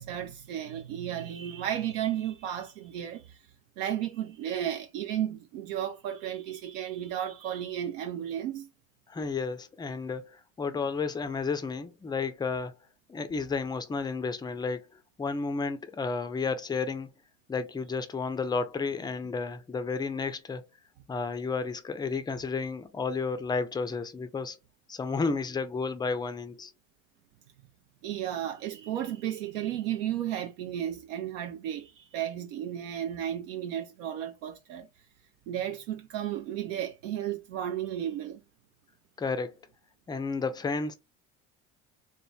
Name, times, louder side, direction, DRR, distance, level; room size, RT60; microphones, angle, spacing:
voice 1, 0.0-3.4 3.8-8.7 10.7-10.8 28.0-34.9 35.5-38.4, right 11 dB, 75° right, 0.5 m, -33 dB
voice 2, 9.1-12.8 13.1-14.8 15.2-17.1 17.5-20.6 21.1-24.6 24.9-26.7 39.2-39.5 40.1-40.9, left 4 dB, 10° left, 0.4 m, -32 dB
3.0 x 2.1 x 2.3 m
hypercardioid pair, 60°, 39 cm